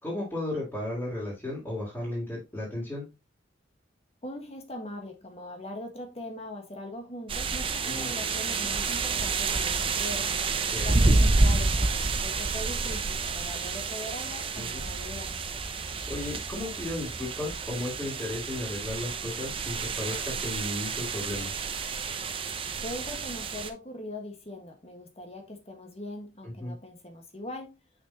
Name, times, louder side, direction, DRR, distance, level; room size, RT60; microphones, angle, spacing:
voice 1, 0.0-3.1 7.8-8.1 10.7-10.9 14.5-14.9 16.1-21.5 26.6-26.7, left 1 dB, 10° left, 2.9 m, -34 dB
voice 2, 4.2-10.3 10.8-15.4 22.8-27.8, left 1 dB, 35° left, 1.6 m, -41 dB
sound 1, 7.3-23.7, right 3 dB, 30° right, 0.6 m, -29 dB
6.4 x 5.9 x 2.9 m
head